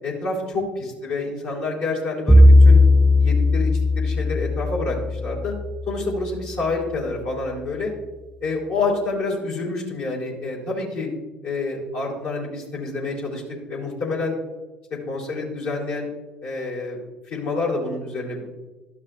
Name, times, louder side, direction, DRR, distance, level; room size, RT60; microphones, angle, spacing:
voice 1, 0.0-2.8 3.2-5.5 5.8-7.9 8.4-11.1 11.4-13.4 13.7-14.4 15.1-16.1 16.4-17.0 17.3-18.6, left 3 dB, 70° left, -4 dB, 3.3 m, -28 dB
Bowed string instrument, 2.3-6.5, left 2 dB, ahead, 0.5 m, -16 dB
12.5 x 5.9 x 3.3 m, 1.1 s
hypercardioid pair, 75°, 4 cm